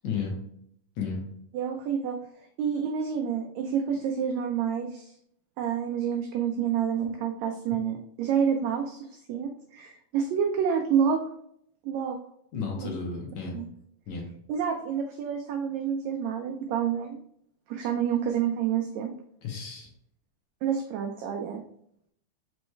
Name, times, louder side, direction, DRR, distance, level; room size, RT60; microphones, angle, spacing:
voice 1, 0.0-0.3 1.0-1.2 12.5-13.5 14.1-14.2 19.4-19.9, left 5 dB, 70° left, -1 dB, 2.0 m, -32 dB
voice 2, 1.5-5.2 5.6-11.2 11.8-12.2 12.8-12.9 13.5-13.7 14.5-17.2 17.7-19.1 20.6-21.6, right 8 dB, 90° right, 3 dB, 1.5 m, -28 dB
5.3 x 3.1 x 3.1 m, 0.70 s
omnidirectional pair, 3.6 m